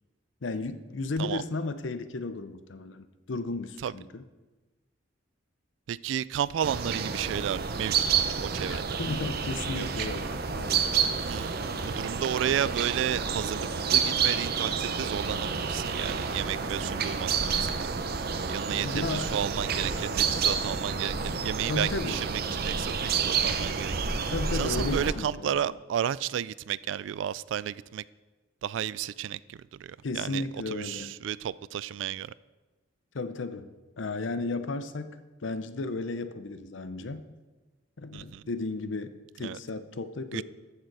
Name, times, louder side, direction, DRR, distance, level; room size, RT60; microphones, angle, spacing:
voice 1, 0.4-4.2 8.7-10.9 18.8-19.3 21.7-22.2 24.3-25.7 30.0-31.1 33.1-33.7 34.0-35.2 35.4-37.2 38.0-39.1 39.4-40.4, left 3 dB, 75° left, 12 dB, 0.7 m, -34 dB
voice 2, 5.9-8.9 9.7-10.1 11.2-17.8 18.5-23.9 24.5-28.0 28.6-32.3 38.1-38.5 39.4-39.6 40.3-40.4, right 9 dB, 70° right, 20 dB, 0.3 m, -32 dB
sound 1, 6.6-25.1, right 6 dB, 55° right, 0.7 m, -29 dB
14.0 x 6.6 x 4.7 m, 1.2 s
head